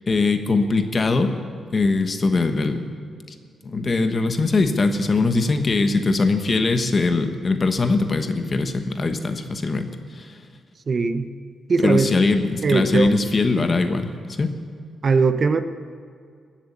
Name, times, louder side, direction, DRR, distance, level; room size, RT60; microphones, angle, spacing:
voice 1, 0.1-1.3 1.7-2.8 3.6-10.4 11.8-14.1 14.4-14.5, left 3 dB, 35° left, 7 dB, 1.2 m, -21 dB
voice 2, 10.9-11.3 11.7-12.3 12.6-13.1 15.0-15.6, right 4 dB, 40° right, 10 dB, 0.7 m, -20 dB
19.5 x 7.3 x 8.5 m, 2.1 s
cardioid pair, 115°, 0 cm